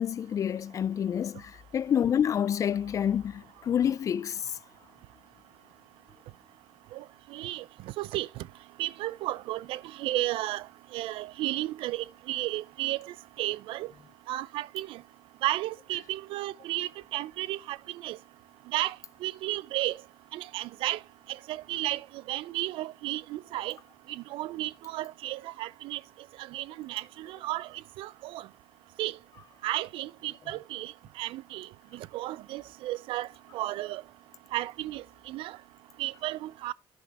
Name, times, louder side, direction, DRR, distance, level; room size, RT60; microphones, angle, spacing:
voice 1, 0.0-4.4, left 9 dB, 35° left, 0.4 m, -28 dB
voice 2, 7.3-7.6 8.0-8.4 8.8-10.7 10.9-13.9 14.3-15.0 15.4-18.2 18.7-19.0 19.2-20.0 20.3-21.0 21.3-22.0 22.3-23.8 24.1-26.0 26.4-27.7 28.0-28.5 29.0-29.2 29.6-30.9 31.2-33.3 33.5-34.0 34.5-35.6 36.0-36.7, right 16 dB, 85° right, 0.4 m, -33 dB
10.5 x 5.5 x 4.7 m
cardioid pair, 130°, 9 cm